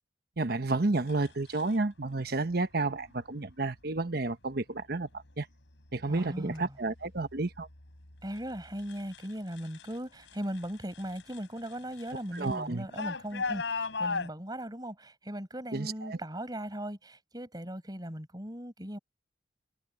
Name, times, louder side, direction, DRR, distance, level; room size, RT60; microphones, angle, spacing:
voice 1, 0.4-5.1 5.4-5.5 5.9-7.7 12.3-12.9 15.7-16.2, right 2 dB, 55° right, 1.1 m, -31 dB
sound 1, 1.1-1.8 2.9-3.2 3.8-4.3 4.8-5.3 5.7-10.0 10.2-14.3, left 4 dB, 85° left, 4.1 m, -39 dB
voice 2, 6.1-6.8 8.2-19.0, equal, 20° right, 6.7 m, -38 dB
head